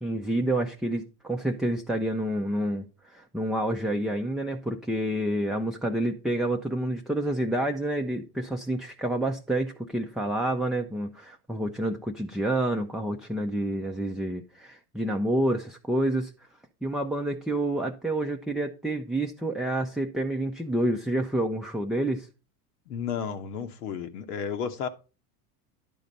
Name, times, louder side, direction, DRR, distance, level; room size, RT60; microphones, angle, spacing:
voice 1, 0.0-16.3 16.8-22.3, right 1 dB, ahead, 0.5 m, -28 dB
voice 2, 22.9-24.9, left 7 dB, 80° left, 1.3 m, -32 dB
11.0 x 4.0 x 5.3 m
hypercardioid pair, 100°, 46 cm